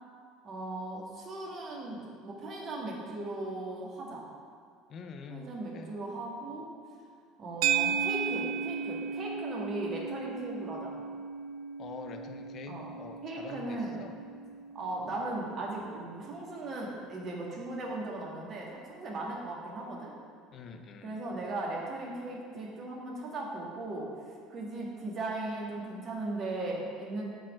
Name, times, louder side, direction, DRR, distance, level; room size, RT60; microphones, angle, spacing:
voice 1, 0.4-4.3 5.3-6.7 7.4-10.9 12.7-12.9 13.2-14.0 14.7-20.1 21.0-27.2, right 2 dB, 45° right, -2 dB, 1.8 m, -37 dB
voice 2, 4.9-5.9 11.8-14.1 20.5-21.2, left 5 dB, 45° left, 5 dB, 0.7 m, -46 dB
sound 1, 7.6-16.0, right 7 dB, 70° right, 0.4 m, -35 dB
8.0 x 4.2 x 6.2 m, 2.2 s
hypercardioid pair, 65°, 0 cm